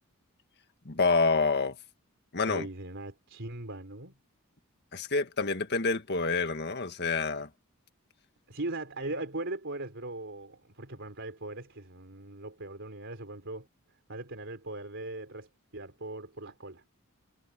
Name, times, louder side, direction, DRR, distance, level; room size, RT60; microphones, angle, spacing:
voice 1, 0.9-1.8 2.3-2.7 4.9-7.5, left 4 dB, 50° left, 1.8 m, -27 dB
voice 2, 2.5-4.1 8.5-13.7 14.1-16.8, right 2 dB, 55° right, 3.9 m, -39 dB
head